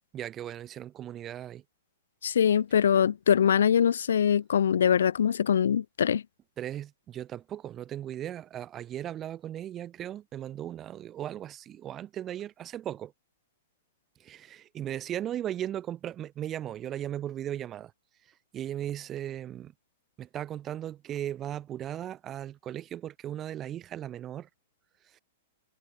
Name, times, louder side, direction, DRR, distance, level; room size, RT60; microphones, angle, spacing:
voice 1, 0.1-1.6 6.6-13.1 14.2-17.9 18.5-19.7 20.2-24.5 25.1-25.2, right 11 dB, 25° right, 5.1 m, -37 dB
voice 2, 2.2-6.2, left 8 dB, 80° left, 0.4 m, -23 dB
hypercardioid pair, 125°, 0 cm